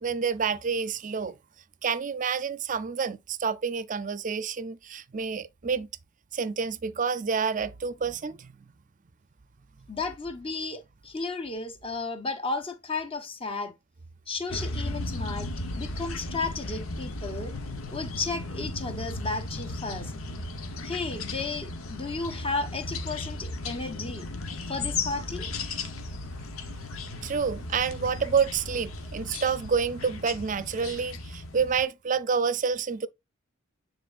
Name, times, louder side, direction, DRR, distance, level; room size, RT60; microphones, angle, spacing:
voice 1, 0.0-1.3 1.8-5.9 6.3-8.5 27.2-33.1, right 6 dB, 40° right, 0.5 m, -28 dB
voice 2, 9.9-13.7 14.3-15.5 15.8-17.5 17.9-20.1 20.8-24.3 24.7-25.5, left 3 dB, 25° left, 1.1 m, -33 dB
sound 1, 14.5-31.8, left 2 dB, 90° left, 1.2 m, -36 dB
9.3 x 4.0 x 2.5 m
head